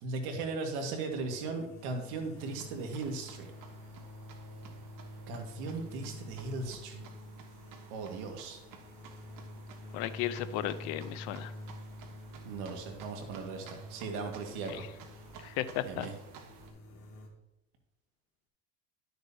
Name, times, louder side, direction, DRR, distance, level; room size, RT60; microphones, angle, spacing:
voice 1, 0.0-3.5 5.3-7.0 7.9-8.6 12.4-14.9 15.1-15.2 15.8-16.1, right 3 dB, 75° right, 3 dB, 1.9 m, -38 dB
sound 1, 1.1-17.3, left 1 dB, 55° left, 2.4 m, -48 dB
sound 2, 2.4-16.7, right 7 dB, 50° right, 1.3 m, -54 dB
voice 2, 9.9-11.5 14.7-14.9 15.4-16.1, left 13 dB, 75° left, 14 dB, 0.7 m, -35 dB
11.5 x 6.6 x 2.8 m, 0.94 s
supercardioid pair, 105°, 40 cm